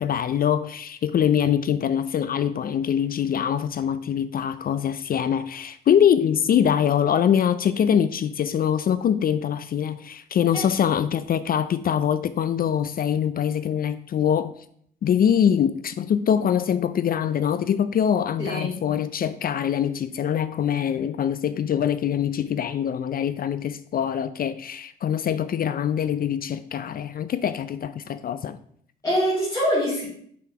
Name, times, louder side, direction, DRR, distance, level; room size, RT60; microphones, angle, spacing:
voice 1, 0.0-14.5 15.0-28.6, left 8 dB, 50° left, 0.4 m, -23 dB
voice 2, 18.4-18.9 29.0-30.0, equal, 15° left, 3.4 m, -24 dB
5.9 x 5.7 x 4.7 m
cardioid pair, 90°, 20 cm